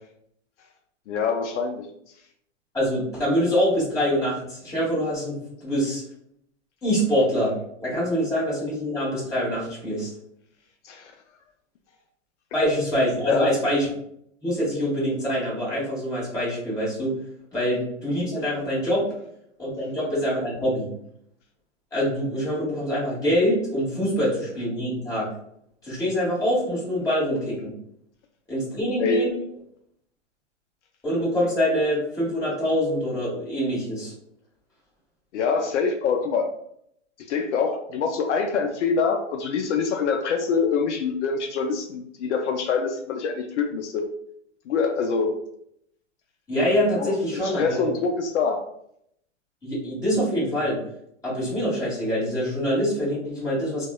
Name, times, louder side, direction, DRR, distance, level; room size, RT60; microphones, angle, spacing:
voice 1, 1.1-1.9 10.8-11.1 13.2-13.5 29.0-29.3 35.3-36.5 37.3-44.1 44.7-45.4 47.0-47.1 47.4-48.6, left 5 dB, 70° left, 3 dB, 0.5 m, -25 dB
voice 2, 2.7-6.0 6.8-7.5 7.8-10.1 12.5-13.9 14.4-17.2 17.5-19.0 19.6-20.9 21.9-25.3 25.8-27.7 28.5-29.4 31.0-34.1 46.5-47.9 49.6-50.8 51.2-53.9, equal, 10° left, -8 dB, 1.3 m, -25 dB
2.8 x 2.1 x 2.2 m, 0.71 s
hypercardioid pair, 135°, 37 cm